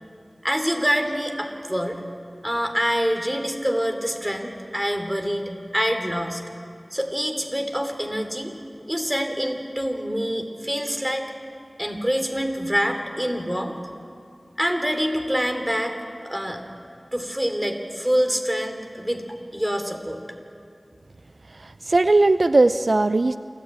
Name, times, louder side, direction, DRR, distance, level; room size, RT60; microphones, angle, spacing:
voice 1, 0.4-2.0 2.4-6.4 6.9-8.5 8.9-11.2 11.8-13.7 14.6-16.0 16.2-16.6 17.1-19.2 19.5-20.2, equal, 15° right, 5 dB, 3.0 m, -26 dB
voice 2, 21.6-23.4, right 2 dB, 70° right, 12 dB, 0.4 m, -18 dB
28.0 x 14.0 x 9.0 m, 2.4 s
wide cardioid pair, 40°, 0 cm